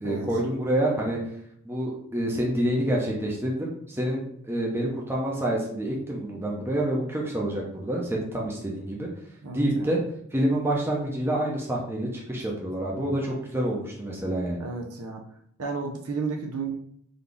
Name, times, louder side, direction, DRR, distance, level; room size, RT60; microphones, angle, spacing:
voice 1, 0.0-1.2 1.6-9.1 9.5-10.0 10.3-14.6, right 1 dB, 10° right, -2 dB, 0.7 m, -27 dB
voice 2, 9.4-9.9 14.6-15.2 15.6-16.7, right 4 dB, 90° right, 1 dB, 0.7 m, -32 dB
4.0 x 2.8 x 3.4 m, 0.66 s
head